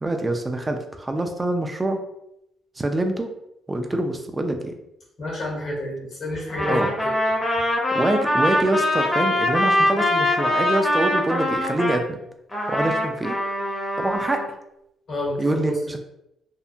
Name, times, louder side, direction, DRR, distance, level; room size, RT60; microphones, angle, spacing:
voice 1, 0.0-2.0 2.8-3.3 3.7-4.7 6.7-6.9 7.9-12.2 12.7-13.4 14.0-14.5 15.4-16.0, right 1 dB, 20° right, 5 dB, 0.3 m, -25 dB
voice 2, 5.2-7.0 15.1-15.7, left 1 dB, 60° left, -4 dB, 1.2 m, -29 dB
Trumpet, 6.5-12.0 12.5-14.5, left 1 dB, 15° left, 0.7 m, -23 dB
2.7 x 2.1 x 2.4 m, 0.83 s
cardioid pair, 90°, 0 cm